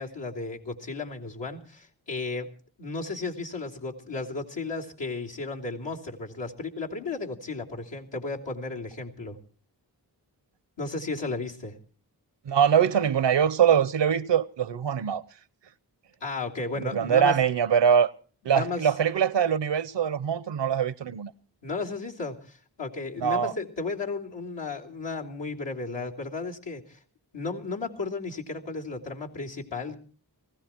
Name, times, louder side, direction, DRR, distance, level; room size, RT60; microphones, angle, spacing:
voice 1, 0.0-2.5 2.8-9.4 10.8-11.8 16.2-17.4 18.4-18.9 21.6-27.0 27.3-30.0, left 3 dB, 85° left, 3.2 m, -34 dB
voice 2, 12.5-15.2 16.9-18.1 18.4-21.3 23.2-23.5, right 8 dB, 90° right, 0.8 m, -23 dB
20.0 x 16.0 x 4.5 m
cardioid pair, 45°, 42 cm